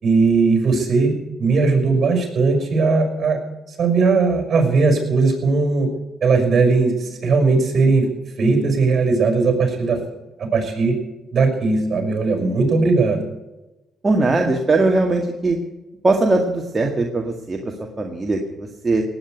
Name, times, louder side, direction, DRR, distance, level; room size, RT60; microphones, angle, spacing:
voice 1, 0.0-3.4 3.7-5.9 6.2-8.1 8.4-10.0 10.4-10.9 11.3-13.2, right 4 dB, 50° right, 5 dB, 6.1 m, -18 dB
voice 2, 14.0-15.6 16.0-19.0, right 2 dB, 25° right, 1 dB, 2.0 m, -20 dB
18.5 x 9.2 x 8.2 m, 1.0 s
cardioid pair, 90°, 0 cm